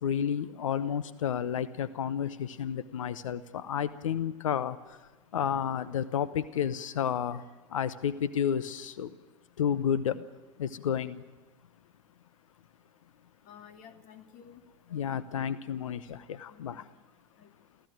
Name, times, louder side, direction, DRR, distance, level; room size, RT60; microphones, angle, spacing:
voice 1, 0.0-7.4 7.7-9.2 9.6-10.3 10.6-11.2 14.9-16.9, left 8 dB, 80° left, 0.9 m, -31 dB
voice 2, 13.4-14.6 14.9-15.2 16.5-16.8 17.4-17.5, left 8 dB, 55° left, 2.8 m, -53 dB
30.0 x 14.0 x 9.2 m
hypercardioid pair, 80°, 16 cm